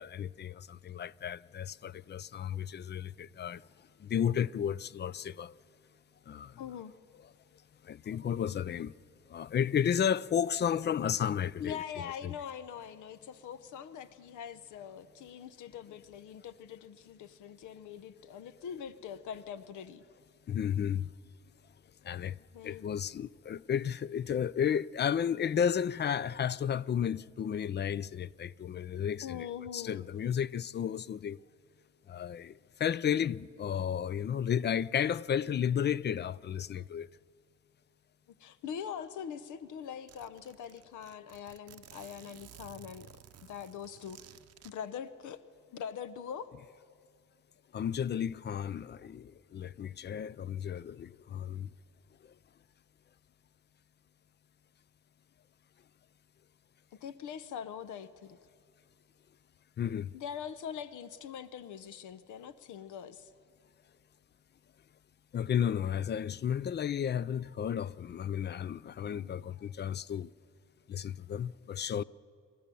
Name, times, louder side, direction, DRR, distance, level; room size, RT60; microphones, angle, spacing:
voice 1, 0.0-3.6 4.0-5.6 6.3-6.5 7.8-8.9 9.3-11.8 12.2-12.3 20.5-21.1 22.0-22.4 22.6-29.5 29.7-31.4 32.1-37.1 47.7-51.7 59.8-60.1 65.3-70.3 70.9-72.0, left 8 dB, 35° left, 0.4 m, -33 dB
voice 2, 6.6-7.0 11.6-20.0 22.5-22.8 29.2-30.1 38.4-44.2 44.6-45.4 45.7-46.5 57.0-58.4 60.1-63.3 69.1-69.5 72.0-72.1, left 8 dB, 80° left, 0.8 m, -43 dB
Zipper (clothing), 39.3-39.4 39.6-39.7 40.1-44.7, right 11 dB, 55° right, 0.7 m, -55 dB
29.5 x 13.0 x 6.9 m
cardioid pair, 90°, 30 cm